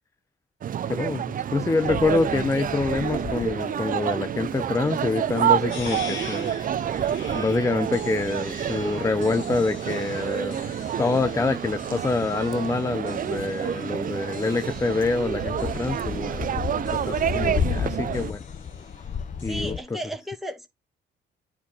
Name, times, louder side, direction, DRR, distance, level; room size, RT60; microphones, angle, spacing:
sound 1, 0.6-18.3, right 9 dB, 45° right, 0.5 m, -28 dB
voice 1, 0.9-6.5 7.3-10.6 11.0-16.6 17.0-18.4 19.4-19.8, left 3 dB, 15° left, 0.5 m, -26 dB
sound 2, 1.8-19.8, left 7 dB, 40° left, 1.1 m, -36 dB
sound 3, 5.7-19.7, left 6 dB, 70° left, 2.1 m, -45 dB
voice 2, 19.4-20.7, right 1 dB, ahead, 2.2 m, -34 dB
10.0 x 4.6 x 5.9 m
cardioid pair, 90°, 20 cm